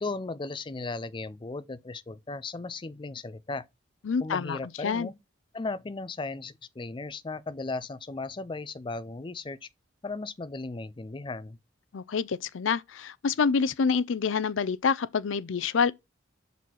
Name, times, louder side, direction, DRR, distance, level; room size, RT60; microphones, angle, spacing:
voice 1, 0.0-3.7 4.2-5.1 5.5-9.7 10.0-11.6, left 3 dB, 25° left, 0.4 m, -36 dB
voice 2, 4.0-5.1 11.9-15.9, left 5 dB, 80° left, 0.5 m, -27 dB
6.3 x 4.0 x 4.2 m
head